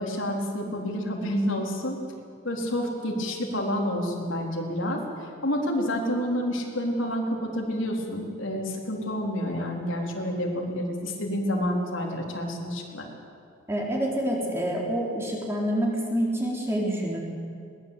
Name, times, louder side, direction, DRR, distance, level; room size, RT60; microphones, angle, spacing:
voice 1, 0.0-2.0 2.4-5.0 5.4-13.1, equal, 75° left, 0 dB, 4.1 m, -29 dB
voice 2, 13.7-17.2, equal, 15° right, -2 dB, 4.1 m, -27 dB
22.0 x 20.0 x 8.5 m, 2.4 s
head